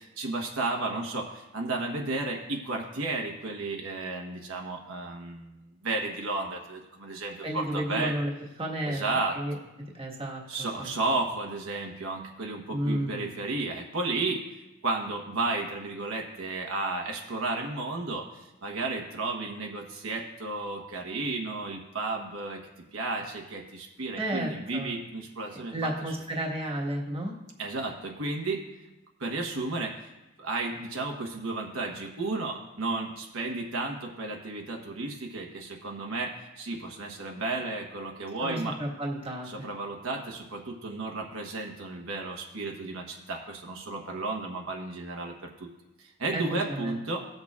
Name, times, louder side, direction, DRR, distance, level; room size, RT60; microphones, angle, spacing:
voice 1, 0.2-1.3 1.5-5.4 5.8-8.1 8.8-9.4 10.5-14.4 14.8-18.2 18.6-22.6 22.9-25.9 27.6-28.6 29.2-29.9 30.4-36.3 36.6-38.8 39.5-43.0 43.3-45.3 46.2-47.2, right 3 dB, 70° right, 1 dB, 1.1 m, -33 dB
voice 2, 7.4-8.3 8.6-9.6 9.9-10.9 12.7-13.3 24.2-24.9 25.7-27.3 38.4-39.7 46.3-47.0, right 1 dB, 25° right, -2 dB, 1.4 m, -32 dB
19.5 x 6.6 x 2.4 m, 0.99 s
head